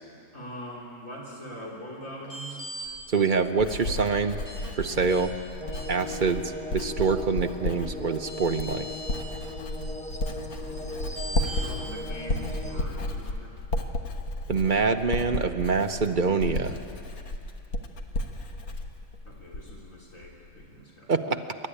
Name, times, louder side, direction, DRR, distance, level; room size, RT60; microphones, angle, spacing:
voice 1, 0.3-2.7 10.6-13.6 19.3-21.5, equal, 65° left, -4 dB, 3.5 m, -43 dB
sound 1, 2.2-2.8 4.4-4.6 5.1-5.2 5.7-6.1 7.8-7.9 8.3-9.2 11.2-11.7, equal, 20° left, 7.6 m, -39 dB
Writing, 2.9-19.9 20.2-20.6, left 1 dB, 85° left, 1.8 m, -33 dB
voice 2, 3.1-4.4 4.8-5.3 5.9-8.9 14.5-16.8 21.1-21.4, right 4 dB, 40° right, 7 dB, 0.8 m, -25 dB
sound 2, 5.6-12.8, left 1 dB, 5° left, 1.2 m, -39 dB
26.0 x 13.0 x 10.0 m, 2.6 s
omnidirectional pair, 1.5 m